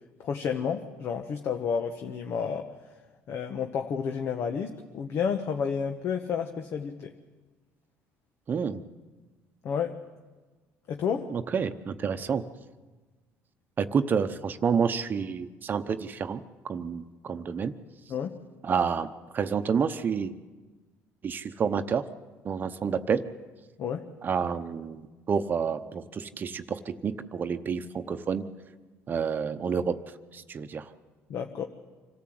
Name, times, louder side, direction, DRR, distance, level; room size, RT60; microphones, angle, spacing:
voice 1, 0.2-2.7 3.3-7.1 9.6-9.9 10.9-11.3 18.1-18.4 23.8-24.1 31.3-31.6, left 6 dB, 55° left, 5 dB, 1.2 m, -30 dB
voice 2, 8.5-8.8 11.3-12.4 13.8-16.4 16.7-17.7 18.6-19.1 19.3-20.3 21.2-22.0 22.4-23.2 24.2-25.0 25.3-28.4 29.1-30.0 30.3-30.8, right 6 dB, 40° right, 9 dB, 0.9 m, -29 dB
26.0 x 14.0 x 7.8 m, 1.3 s
cardioid pair, 105°, 5 cm